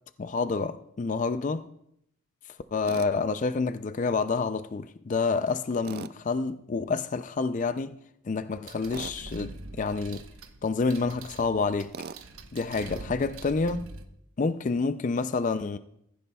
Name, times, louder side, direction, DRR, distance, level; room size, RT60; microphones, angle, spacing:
voice 1, 0.2-1.6 2.7-8.0 8.2-10.2 10.6-11.9 12.5-13.9 14.4-15.8, left 4 dB, 35° left, 0.3 m, -28 dB
Tools, 2.9-3.1 5.8-6.2 8.9-9.2 11.9-12.2, right 6 dB, 45° right, 0.3 m, -39 dB
sound 1, 8.7-14.1, right 2 dB, 75° right, 1.0 m, -44 dB
15.5 x 15.0 x 2.3 m
head